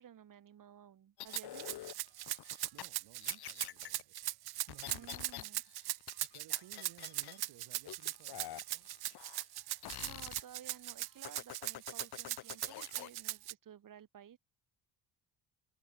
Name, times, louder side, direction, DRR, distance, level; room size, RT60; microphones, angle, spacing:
voice 1, 0.0-1.8 4.9-5.6 10.0-14.4, right 9 dB, 50° right, 6.0 m, -55 dB
sound 1, 1.2-2.9 3.2-4.0 4.7-5.4 5.7-7.4 7.9-9.6 9.8-10.4 11.2-13.1, left 14 dB, 65° left, 1.2 m, -47 dB
Rattle (instrument), 1.3-13.5, right 15 dB, 65° right, 0.8 m, -39 dB
voice 2, 2.7-5.6 6.3-8.9 9.9-10.1, right 15 dB, 90° right, 3.5 m, -60 dB
cardioid pair, 155°, 41 cm